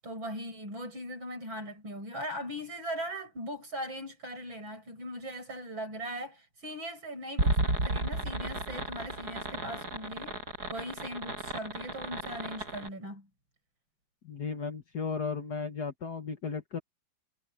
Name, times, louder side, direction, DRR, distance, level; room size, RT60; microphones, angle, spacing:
voice 1, 0.0-10.4 10.7-13.3, equal, 80° right, 8.8 m, -39 dB
sound 1, 7.4-12.9, right 2 dB, 50° right, 8.9 m, -33 dB
voice 2, 14.2-16.8, left 5 dB, 55° left, 2.0 m, -35 dB
omnidirectional pair, 2.1 m